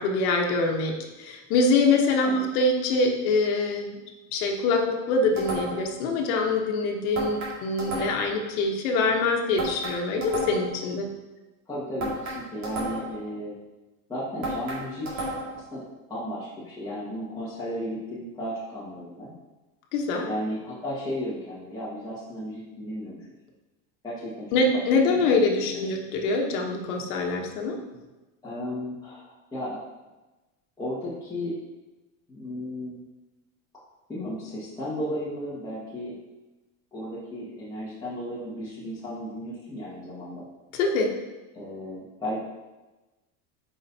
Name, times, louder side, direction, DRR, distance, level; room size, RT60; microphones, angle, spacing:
voice 1, 0.0-4.0 4.3-11.1 19.9-20.3 24.5-27.8 40.7-41.2, left 3 dB, 85° left, 1 dB, 1.2 m, -24 dB
sound 1, 5.4-6.0 7.1-8.4 9.6-10.8 12.0-13.2 14.4-15.6, right 1 dB, 40° right, 2.3 m, -32 dB
voice 2, 11.7-13.5 14.1-15.8 16.1-19.3 20.3-23.2 24.0-24.5 25.1-25.9 28.4-29.8 30.8-31.5 32.3-33.0 34.1-36.1 36.9-40.4 41.5-42.4, equal, 10° left, -10 dB, 1.8 m, -34 dB
8.5 x 5.6 x 2.8 m, 1.1 s
cardioid pair, 150°, 42 cm